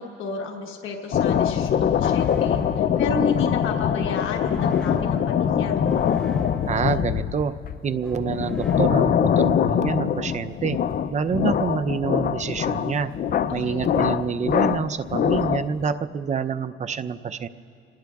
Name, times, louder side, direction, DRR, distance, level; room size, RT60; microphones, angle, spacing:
voice 1, 0.0-5.8 13.5-13.9, left 4 dB, 80° left, 1 dB, 1.2 m, -31 dB
sound 1, 1.1-15.8, left 8 dB, 50° left, 0.4 m, -23 dB
sound 2, 2.0-9.7, left 1 dB, 5° left, 3.6 m, -41 dB
voice 2, 6.7-7.5 7.8-10.8 11.1-13.1 13.5-17.5, right 6 dB, 35° right, 11 dB, 0.5 m, -27 dB
29.0 x 19.0 x 2.3 m, 2.6 s
cardioid pair, 90°, 20 cm